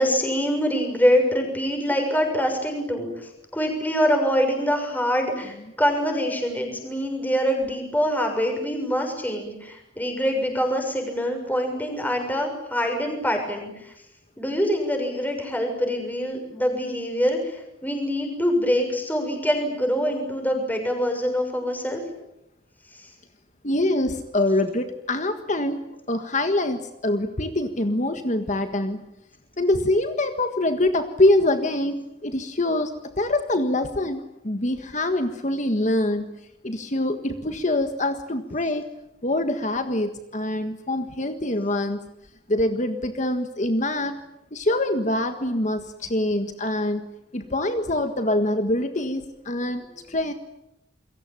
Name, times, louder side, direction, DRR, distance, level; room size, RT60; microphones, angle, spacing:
voice 1, 0.0-13.9 14.4-22.0 22.9-23.1, equal, 10° left, 3 dB, 6.7 m, -24 dB
voice 2, 23.6-29.0 29.6-32.9 33.2-36.3 36.6-38.8 39.2-42.0 42.5-44.2 44.5-47.0 47.3-50.3, left 1 dB, 40° left, 7 dB, 1.6 m, -24 dB
28.5 x 23.5 x 9.0 m, 0.86 s
head